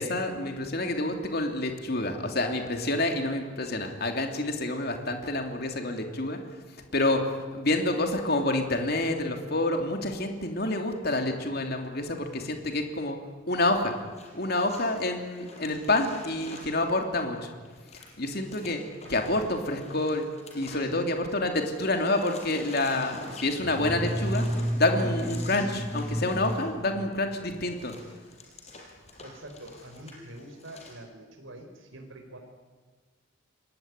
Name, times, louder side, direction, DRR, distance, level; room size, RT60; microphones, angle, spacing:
voice 1, 0.0-6.4 6.9-13.2 13.5-13.9 14.3-17.5 18.2-18.8 19.1-20.2 20.5-24.4 24.7-27.9, left 2 dB, 50° left, 4 dB, 3.0 m, -28 dB
sound 1, 13.7-21.4 21.6-30.9, left 2 dB, 35° left, 5.9 m, -47 dB
voice 2, 20.8-21.1 29.2-32.4, right 1 dB, 80° right, 3 dB, 4.6 m, -45 dB
sound 2, 23.6-27.7, equal, 10° right, 1.4 m, -31 dB
27.5 x 21.0 x 9.8 m, 1.4 s
head